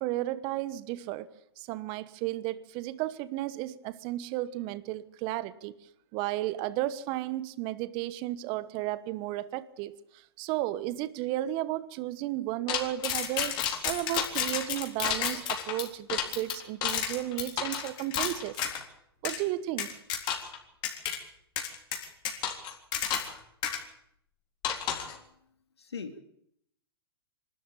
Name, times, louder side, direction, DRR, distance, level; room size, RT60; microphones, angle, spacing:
voice 1, 0.0-1.3 1.6-5.7 6.1-13.6 13.8-18.7 19.2-19.9, right 15 dB, 40° right, 16 dB, 1.2 m, -33 dB
sound 1, 12.7-18.8 19.2-19.4 19.8-20.6 20.8-21.2 21.6-23.4 23.6-23.8 24.6-25.1, left 9 dB, 35° left, 3.8 m, -31 dB
voice 2, 25.8-26.2, left 5 dB, 85° left, 7 dB, 2.8 m, -41 dB
25.0 x 13.0 x 9.0 m, 0.71 s
hypercardioid pair, 115°, 13 cm